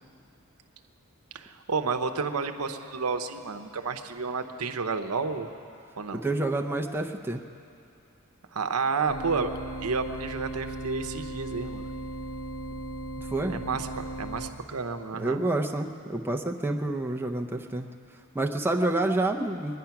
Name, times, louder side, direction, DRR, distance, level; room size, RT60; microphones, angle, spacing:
voice 1, 1.3-5.5 6.0-6.2 8.5-9.5 9.8-11.8 13.5-15.4, right 4 dB, 80° right, 7 dB, 0.8 m, -31 dB
voice 2, 6.1-7.4 13.2-13.6 15.2-17.9 18.3-19.8, right 2 dB, 10° right, 2 dB, 0.5 m, -28 dB
sound 1, 9.1-14.5, right 2 dB, 70° left, 1.1 m, -37 dB
22.5 x 10.0 x 5.9 m, 2.6 s
head